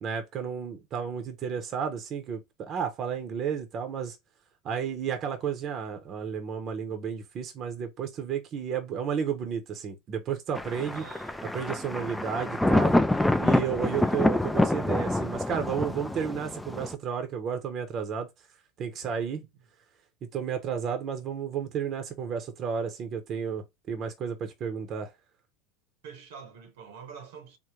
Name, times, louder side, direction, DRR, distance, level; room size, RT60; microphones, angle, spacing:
voice 1, 0.0-4.2 4.6-11.0 11.5-12.9 13.4-18.3 18.8-19.4 20.3-25.1, right 7 dB, 45° right, 0.7 m, -32 dB
Thunder, 10.5-16.9, left 1 dB, 5° left, 0.4 m, -26 dB
voice 2, 10.9-11.5 14.0-14.4 26.0-27.6, right 6 dB, 70° right, 0.9 m, -46 dB
3.6 x 2.1 x 3.1 m
hypercardioid pair, 90°, 0 cm